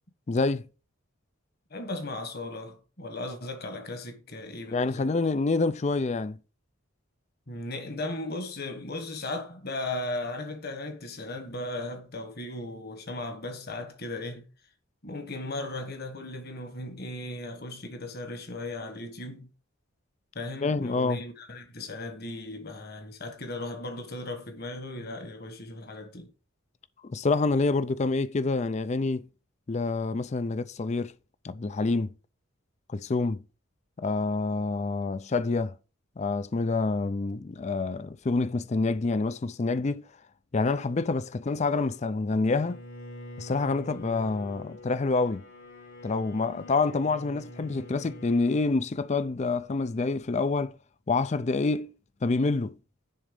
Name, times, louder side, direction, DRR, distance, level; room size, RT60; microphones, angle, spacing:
voice 1, 0.3-0.7 4.7-6.4 20.6-21.2 27.0-29.2 29.7-31.1 31.4-32.1 32.9-33.4 34.0-35.7 36.2-40.0 40.5-42.8 43.4-45.4 46.0-50.7 51.1-51.9 52.2-52.8, left 3 dB, 35° left, 0.4 m, -27 dB
voice 2, 1.7-5.1 7.5-14.4 15.0-19.5 20.3-26.3, left 2 dB, 50° left, 1.6 m, -37 dB
Bowed string instrument, 42.5-48.7, left 1 dB, 80° left, 4.3 m, -45 dB
10.5 x 4.0 x 5.2 m
head